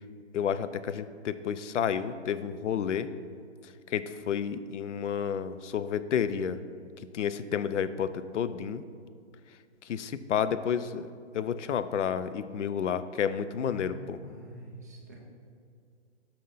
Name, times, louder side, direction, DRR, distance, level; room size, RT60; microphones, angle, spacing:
voice 1, 0.3-3.1 3.9-6.6 7.1-8.8 9.9-11.1 11.3-14.2, left 8 dB, 85° left, 13 dB, 0.5 m, -30 dB
voice 2, 13.5-15.2, right 1 dB, 15° right, -2 dB, 0.4 m, -46 dB
6.4 x 5.6 x 4.0 m, 2.2 s
hypercardioid pair, 140°, 35 cm